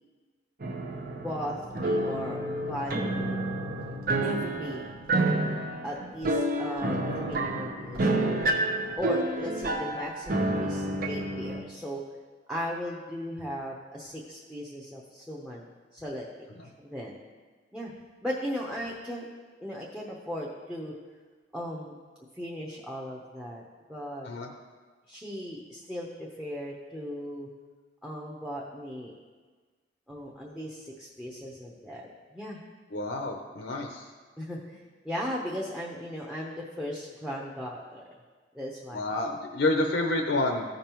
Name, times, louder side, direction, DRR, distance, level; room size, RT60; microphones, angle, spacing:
sound 1, 0.6-11.6, right 2 dB, 50° right, 0.8 m, -29 dB
voice 1, 1.1-3.5 4.2-4.9 5.8-8.4 9.0-12.0 12.5-16.3 16.8-17.2 17.7-17.9 18.2-19.3 19.6-20.9 21.5-22.0 22.4-23.6 23.9-24.3 25.1-27.5 28.0-29.1 30.1-32.6 34.4-38.0 38.5-39.2, equal, 5° right, -3 dB, 0.8 m, -37 dB
voice 2, 32.9-34.1 38.9-40.6, left 2 dB, 65° left, 3 dB, 0.7 m, -28 dB
14.5 x 5.2 x 3.0 m, 1.4 s
head